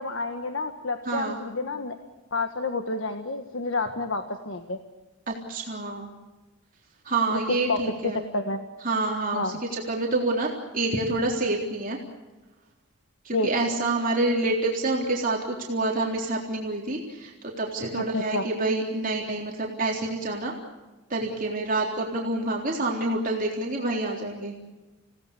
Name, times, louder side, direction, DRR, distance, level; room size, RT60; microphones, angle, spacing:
voice 1, 0.0-1.9 2.3-4.8 7.3-7.8 8.3-8.6 9.3-9.6 13.3-13.5 18.0-18.5, left 2 dB, 65° left, 6 dB, 1.6 m, -29 dB
voice 2, 1.1-1.4 5.3-6.1 7.1-8.2 8.8-12.0 13.3-20.5 21.1-24.5, right 2 dB, 40° right, -1 dB, 3.7 m, -27 dB
29.0 x 18.0 x 8.5 m, 1.2 s
head